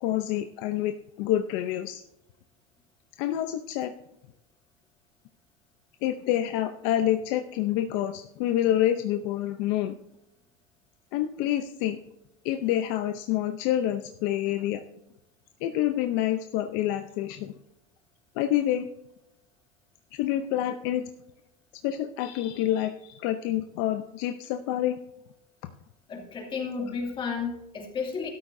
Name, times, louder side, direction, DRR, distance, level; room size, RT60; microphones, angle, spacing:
voice 1, 0.0-2.0 3.2-3.9 6.0-9.9 11.1-12.0 12.4-14.8 15.6-17.5 18.4-18.9 20.1-21.1 21.8-25.0, left 12 dB, 65° left, 7 dB, 0.7 m, -27 dB
voice 2, 26.1-28.3, left 5 dB, 25° left, 0 dB, 2.6 m, -32 dB
13.5 x 12.5 x 2.7 m, 0.88 s
cardioid pair, 150°, 19 cm